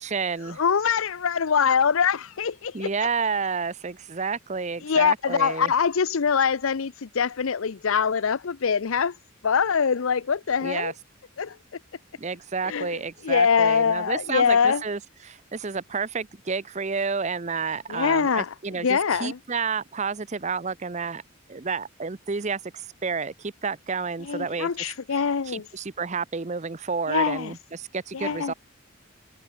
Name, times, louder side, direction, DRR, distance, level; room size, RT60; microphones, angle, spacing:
voice 1, 0.0-0.6 2.7-5.7 10.6-10.9 12.2-21.2 21.5-24.7 25.1-28.5, right 5 dB, 35° right, 0.7 m, -30 dB
voice 2, 0.6-2.9 4.8-9.1 9.4-10.9 11.4-11.6 12.6-13.0 13.2-14.8 17.9-18.5 18.8-19.4 24.2-25.7 27.1-27.5 28.1-28.5, left 6 dB, 80° left, 0.6 m, -23 dB
head